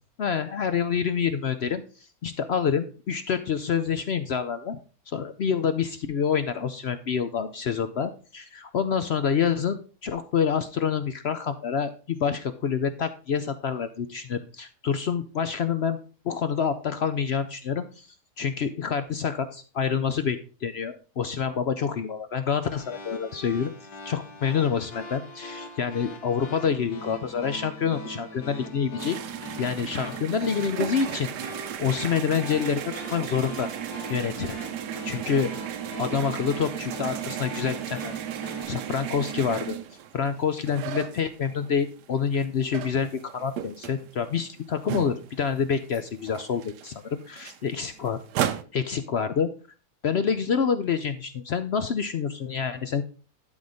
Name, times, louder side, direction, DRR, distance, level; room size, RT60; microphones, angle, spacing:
voice 1, 0.2-1.8 2.2-4.8 5.1-16.0 16.2-23.7 24.1-29.2 29.6-33.7 34.1-34.6 35.0-35.5 36.0-38.1 38.7-39.8 40.1-48.2 48.7-49.5 50.0-53.0, left 7 dB, 65° left, 10 dB, 0.6 m, -27 dB
sound 1, 22.6-38.6, left 1 dB, 85° left, 1.9 m, -41 dB
sound 2, 29.0-41.8 42.2-45.6 45.9-46.0 46.3-48.6, right 10 dB, 85° right, 1.3 m, -35 dB
12.0 x 4.1 x 4.9 m, 0.36 s
omnidirectional pair, 1.7 m